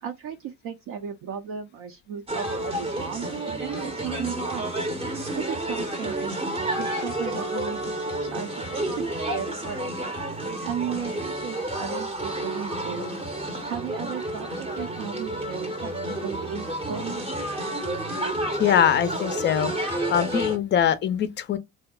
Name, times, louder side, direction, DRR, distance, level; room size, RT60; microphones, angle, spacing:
voice 1, 0.0-4.6 5.4-9.8 10.6-13.1 13.7-17.5, right 8 dB, 55° right, 0.6 m, -35 dB
sound 1, 2.3-20.6, right 1 dB, 15° right, 0.7 m, -30 dB
voice 2, 18.5-19.7 20.1-21.6, left 9 dB, 30° left, 0.4 m, -22 dB
2.7 x 2.0 x 2.3 m
supercardioid pair, 85°, 38 cm